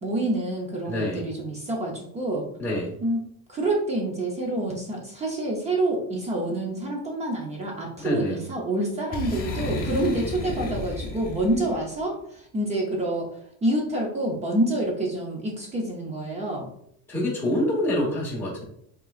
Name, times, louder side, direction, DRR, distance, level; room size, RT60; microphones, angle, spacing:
voice 1, 0.0-2.5 3.0-3.2 3.5-13.3 13.6-16.7, right 1 dB, 20° right, 0 dB, 0.6 m, -27 dB
voice 2, 0.9-1.2 2.6-2.9 8.0-8.4 17.1-18.6, left 1 dB, 5° left, -6 dB, 1.2 m, -26 dB
Boom, 9.1-11.8, left 2 dB, 25° left, 1.0 m, -32 dB
5.7 x 3.8 x 2.4 m, 0.71 s
cardioid pair, 170°, 35 cm